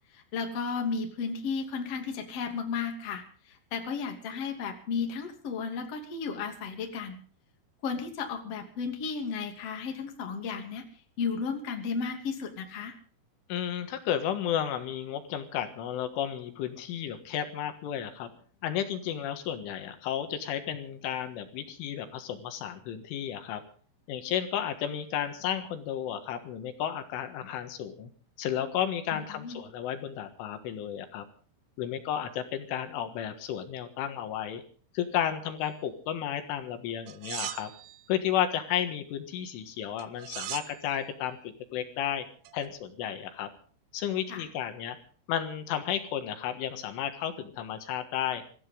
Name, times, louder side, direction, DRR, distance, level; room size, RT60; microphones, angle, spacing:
voice 1, 0.1-3.2 3.5-7.2 7.8-10.8 11.2-12.9 29.1-29.6 44.3-44.4, left 5 dB, 40° left, 4 dB, 2.9 m, -34 dB
voice 2, 13.5-18.3 18.6-23.6 24.1-28.1 28.4-31.3 31.8-34.6 35.0-37.7 38.1-42.3 42.5-43.5 43.9-45.0 45.3-48.4, left 10 dB, 75° left, 8 dB, 3.9 m, -33 dB
sound 1, 37.1-38.0 40.0-40.8 42.4-42.7, right 14 dB, 80° right, 2.4 m, -39 dB
25.0 x 15.0 x 3.8 m, 0.43 s
omnidirectional pair, 5.8 m